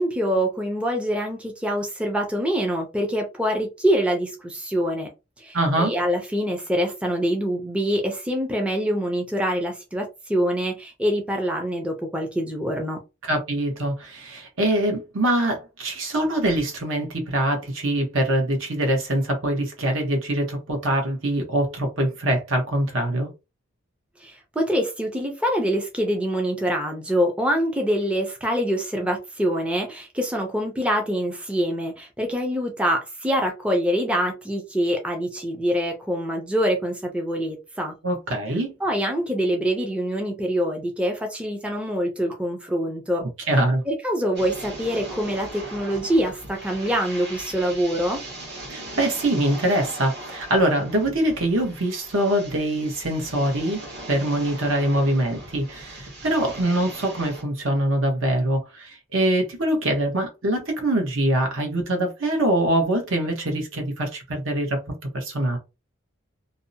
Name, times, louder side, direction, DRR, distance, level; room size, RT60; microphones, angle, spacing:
voice 1, 0.0-5.1 5.4-13.0 24.2-37.9 38.8-43.2 43.5-43.6 43.9-48.2, equal, 5° right, 0.4 m, -25 dB
voice 2, 5.5-5.9 13.2-23.3 38.0-38.7 43.5-43.8 48.7-53.8 54.1-64.8 65.1-65.6, right 1 dB, 75° right, 1.0 m, -23 dB
sound 1, 44.4-57.4, right 1 dB, 55° right, 1.2 m, -39 dB
2.6 x 2.1 x 2.6 m
head